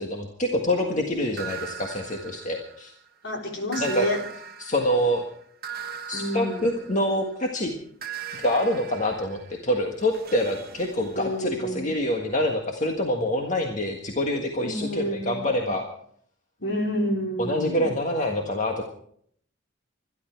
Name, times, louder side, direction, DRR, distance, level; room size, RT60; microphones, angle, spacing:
voice 1, 0.0-2.9 3.8-4.1 4.6-5.2 6.1-7.7 8.4-15.8 17.4-18.9, left 1 dB, 40° left, 2 dB, 1.7 m, -26 dB
sound 1, 1.4-3.1 3.7-7.4 8.0-11.7, right 7 dB, 50° right, 1.1 m, -40 dB
voice 2, 3.2-4.2 6.1-6.7 11.1-11.9 14.6-15.5 16.6-17.9, equal, 60° left, 2 dB, 3.8 m, -29 dB
25.0 x 11.5 x 4.6 m, 0.64 s
head